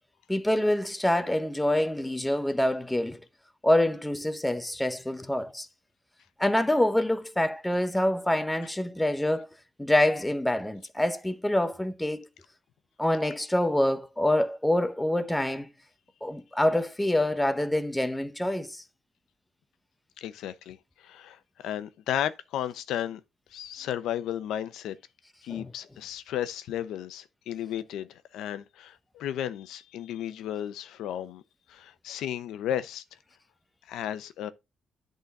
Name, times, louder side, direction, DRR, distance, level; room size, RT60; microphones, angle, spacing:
voice 1, 0.3-3.2 3.6-5.7 6.4-9.5 9.8-12.3 13.0-15.7 16.2-18.8 25.5-25.7, left 1 dB, 5° left, 0.7 m, -26 dB
voice 2, 20.2-23.2 23.5-25.0 25.4-31.4 31.7-33.0 33.9-34.5, left 11 dB, 85° left, 0.7 m, -34 dB
10.5 x 3.9 x 4.1 m
cardioid pair, 125°, 0 cm